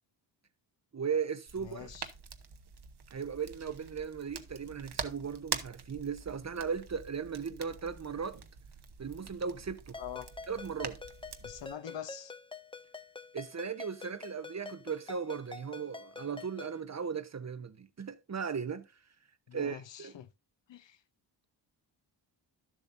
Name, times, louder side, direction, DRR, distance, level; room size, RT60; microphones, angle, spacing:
voice 1, 0.9-1.9 3.1-8.4 9.0-10.0 10.5-11.0 13.3-18.9 19.5-20.1, right 6 dB, 35° right, 0.8 m, -37 dB
sound 1, 1.5-11.7, right 7 dB, 55° right, 1.1 m, -45 dB
voice 2, 1.6-2.1 10.0-10.3 11.4-12.3 19.5-20.3 20.7-21.0, left 10 dB, 70° left, 0.8 m, -44 dB
Ringtone, 9.9-16.8, left 4 dB, 10° left, 0.5 m, -47 dB
11.5 x 7.4 x 2.6 m
cardioid pair, 85°, 46 cm